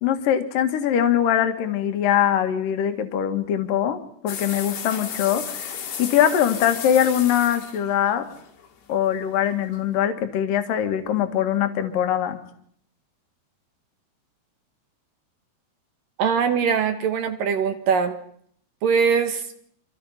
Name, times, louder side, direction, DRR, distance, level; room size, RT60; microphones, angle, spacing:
voice 1, 0.0-8.3 8.9-12.4, left 10 dB, 60° left, 7 dB, 3.1 m, -22 dB
sound 1, 4.3-9.2, left 7 dB, 75° left, 4.7 m, -34 dB
voice 2, 16.2-18.2 18.8-19.4, right 6 dB, 65° right, 8 dB, 2.7 m, -22 dB
27.5 x 26.0 x 5.8 m, 0.66 s
omnidirectional pair, 4.9 m